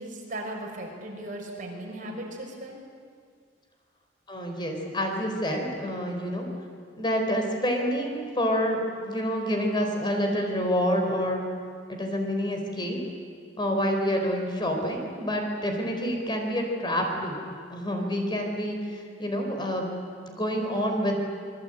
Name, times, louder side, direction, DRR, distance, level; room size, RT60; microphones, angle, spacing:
voice 1, 0.0-2.8, right 1 dB, 45° right, 0 dB, 5.9 m, -37 dB
voice 2, 4.3-6.5 7.0-11.6 11.9-13.0 13.6-17.4 17.7-19.9 20.3-21.2, equal, 25° left, 3 dB, 4.5 m, -28 dB
27.0 x 22.5 x 9.1 m, 2.1 s
head